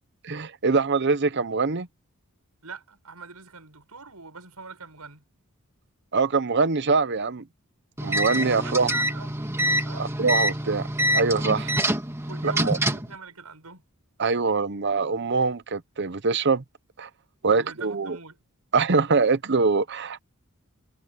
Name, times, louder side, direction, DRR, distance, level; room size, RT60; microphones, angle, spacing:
voice 1, 0.2-1.9 6.1-7.4 8.0-8.9 10.0-10.9 11.1-11.6 12.4-12.8 14.2-16.6 17.0-17.1 17.4-18.2 18.7-20.2, right 4 dB, 50° right, 0.8 m, -23 dB
voice 2, 2.6-5.3 8.5-9.3 9.8-10.1 11.6-11.9 12.3-13.8 17.5-18.4, right 5 dB, 90° right, 7.7 m, -42 dB
sound 1, 8.0-13.1, equal, 10° right, 2.2 m, -26 dB
head